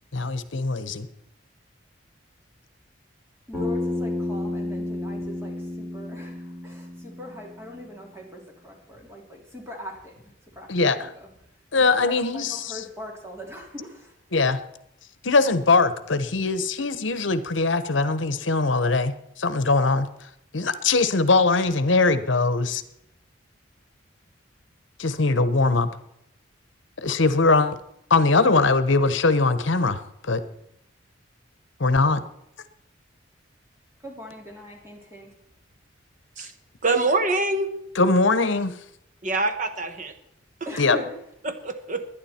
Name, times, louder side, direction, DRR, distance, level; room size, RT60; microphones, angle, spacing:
voice 1, 0.1-1.1 10.7-11.0 11.7-12.8 14.3-14.6 15.2-19.1 19.4-20.1 20.5-22.8 25.0-25.9 27.0-27.7 28.1-30.0 30.3-30.4 31.8-32.2 38.0-38.7 40.8-41.0, left 3 dB, 75° left, 13 dB, 1.0 m, -21 dB
Bass guitar, 3.5-7.8, left 1 dB, 5° left, 5.4 m, -31 dB
voice 2, 3.5-11.3 11.7-14.1 34.0-35.3 40.6-41.1, left 1 dB, 15° right, 0 dB, 3.0 m, -41 dB
voice 3, 36.8-37.7 39.2-40.1 41.4-42.0, right 2 dB, 40° right, 8 dB, 1.1 m, -25 dB
21.0 x 10.0 x 4.3 m, 0.79 s
head